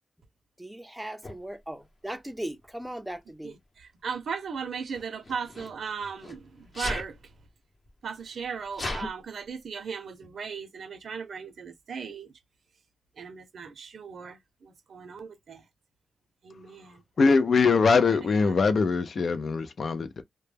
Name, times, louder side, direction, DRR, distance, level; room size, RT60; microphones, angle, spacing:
voice 1, 0.6-3.6, right 1 dB, 5° right, 0.4 m, -38 dB
Sneeze, 1.2-1.4 2.5-2.8 4.9-6.4 6.7-7.1 7.9-8.0 8.2-9.1, left 2 dB, 40° left, 0.8 m, -36 dB
voice 2, 3.4-7.2 8.0-12.3 13.2-15.6 16.4-17.0, right 6 dB, 70° right, 0.6 m, -37 dB
voice 3, 17.2-20.2, left 4 dB, 55° left, 0.4 m, -22 dB
2.1 x 2.1 x 3.2 m
wide cardioid pair, 110°, 0 cm